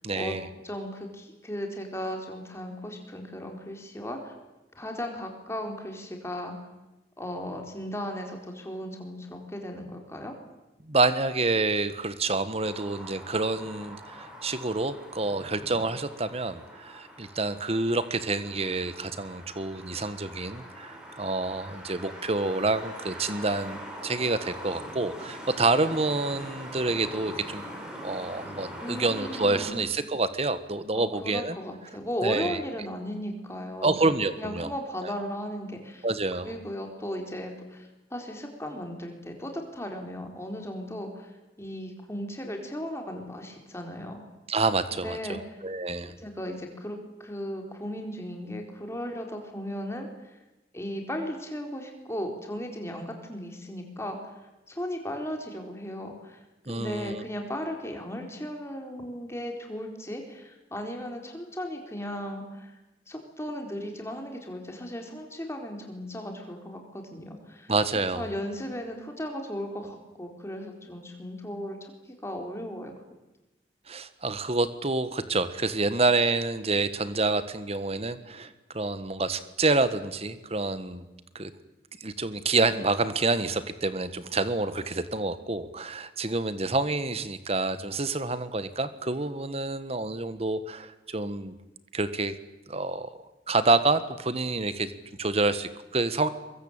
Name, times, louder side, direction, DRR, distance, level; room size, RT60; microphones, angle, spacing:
voice 1, 0.0-0.4 10.8-27.6 28.0-31.6 32.2-32.6 33.8-34.7 35.0-35.1 36.0-36.5 44.5-46.1 56.7-57.2 67.7-68.3 73.9-81.1 81.3-81.5 82.0-91.5 91.9-92.3 92.7-93.1 93.5-94.9 95.2-96.3, right 3 dB, 35° right, 13 dB, 1.5 m, -28 dB
voice 2, 0.6-4.3 4.7-6.6 7.2-10.4 28.8-29.8 30.9-33.9 34.4-36.1 36.4-41.3 41.6-44.2 45.0-45.6 46.0-50.1 50.7-54.4 54.7-56.4 56.7-62.7 63.1-67.7 68.1-72.9, equal, 15° left, 3 dB, 4.2 m, -36 dB
sound 1, 12.6-29.7, equal, 5° right, 6.0 m, -43 dB
23.0 x 23.0 x 9.0 m, 1.0 s
head